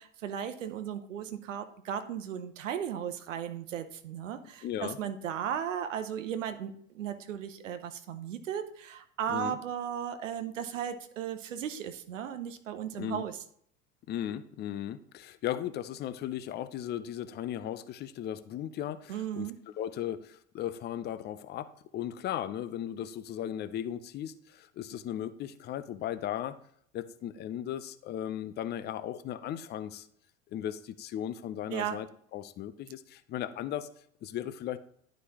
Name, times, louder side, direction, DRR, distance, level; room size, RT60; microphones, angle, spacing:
voice 1, 0.0-13.4 19.1-19.6 31.7-32.0, right 9 dB, 70° right, 8 dB, 0.8 m, -36 dB
voice 2, 4.6-5.0 9.3-9.6 13.0-13.2 14.1-19.5 19.8-26.6 26.9-30.1 30.5-32.1 32.3-33.9 34.2-34.8, left 11 dB, 25° left, 14 dB, 0.5 m, -36 dB
11.0 x 5.0 x 2.9 m, 0.64 s
figure-of-eight pair, 75°, 39 cm